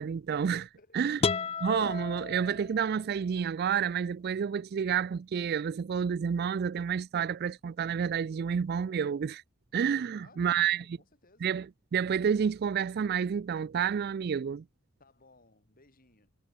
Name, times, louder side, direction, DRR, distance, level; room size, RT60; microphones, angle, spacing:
voice 1, 0.0-1.2 1.6-9.4 9.7-10.8 11.4-11.7 11.9-14.6, right 7 dB, 50° right, 0.3 m, -29 dB
voice 2, 0.8-1.6 10.1-11.5 15.0-16.3, left 3 dB, 45° left, 4.9 m, -61 dB
sound 1, 1.2-3.1, left 5 dB, 30° left, 0.5 m, -33 dB
head